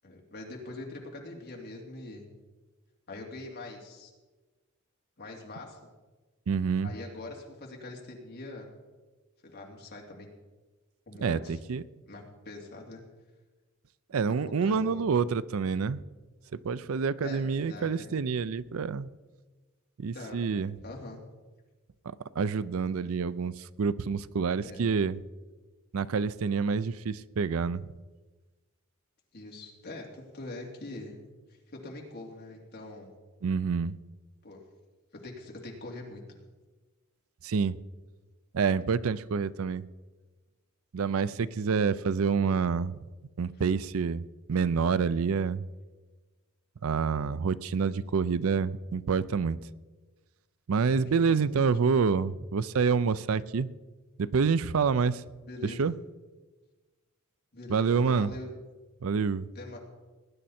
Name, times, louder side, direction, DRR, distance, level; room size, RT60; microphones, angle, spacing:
voice 1, 0.0-2.3 3.1-4.1 5.2-5.8 6.8-8.7 9.4-10.3 11.1-11.6 12.0-13.0 14.1-15.0 17.2-18.1 20.1-20.4 20.8-21.2 24.6-24.9 29.3-31.2 31.5-33.1 34.4-34.6 35.1-36.2 43.6-43.7 47.9-48.0 50.8-51.6 55.4-55.9 57.5-58.5 59.5-59.8, left 2 dB, 50° left, -1 dB, 2.9 m, -43 dB
voice 2, 6.5-6.9 11.2-11.8 14.1-16.0 16.5-19.1 20.0-20.8 22.1-25.2 25.9-27.9 33.4-34.0 37.4-37.8 38.5-39.8 40.9-43.0 43.4-44.2 44.5-45.6 46.8-49.6 50.7-53.7 54.2-55.2 55.6-56.0 57.7-58.3 59.0-59.5, right 5 dB, 70° right, 17 dB, 0.5 m, -27 dB
19.0 x 10.0 x 4.3 m, 1.2 s
head